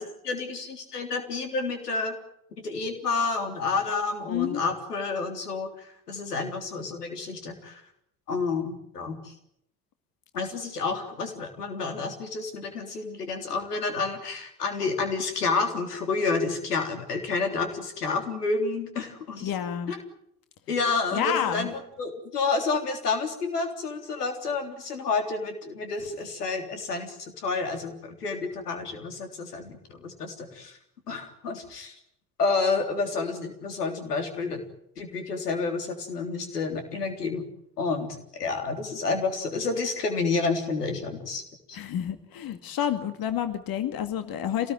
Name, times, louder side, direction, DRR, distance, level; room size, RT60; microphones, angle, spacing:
voice 1, 0.0-2.2 2.6-5.7 6.1-7.8 8.3-9.3 10.3-19.5 19.9-20.0 20.7-30.8 31.1-32.0 32.4-34.6 35.0-37.4 37.8-41.4 41.7-41.8, left 4 dB, 85° left, 5 dB, 3.6 m, -29 dB
voice 2, 4.3-4.6 19.4-19.9 21.1-21.7 41.7-44.7, left 9 dB, 50° left, 8 dB, 2.3 m, -29 dB
27.0 x 19.0 x 9.3 m, 0.78 s
hypercardioid pair, 60°, 45 cm